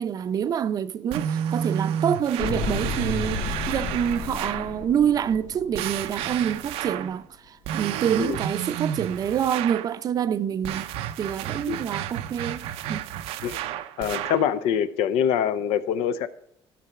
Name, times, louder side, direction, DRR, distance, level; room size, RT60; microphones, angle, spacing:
voice 1, 0.0-7.2 7.8-10.9 11.2-13.0, right 8 dB, 40° right, 0.6 m, -26 dB
sound 1, 1.1-4.8 5.7-7.2 7.6-9.9 10.6-14.5, right 9 dB, 85° right, 0.7 m, -31 dB
sound 2, 2.4-6.7 6.9-7.0, left 6 dB, 60° left, 1.6 m, -33 dB
voice 2, 14.0-16.3, left 8 dB, 90° left, 0.8 m, -24 dB
12.5 x 6.7 x 5.8 m
cardioid pair, 145°, 10 cm